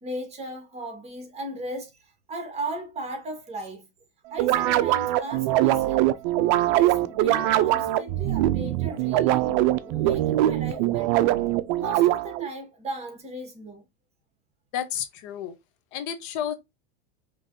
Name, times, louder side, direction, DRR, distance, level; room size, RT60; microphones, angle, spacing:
voice 1, 0.0-3.9 4.3-6.2 6.7-11.4 11.8-13.8, right 1 dB, 20° right, 1.6 m, -37 dB
sound 1, 4.4-12.5, right 14 dB, 55° right, 0.5 m, -22 dB
sound 2, 6.4-11.5, right 2 dB, 5° left, 2.5 m, -47 dB
voice 2, 14.7-15.5 15.9-16.5, left 9 dB, 60° left, 0.9 m, -31 dB
5.3 x 3.1 x 2.6 m
supercardioid pair, 145°, 30 cm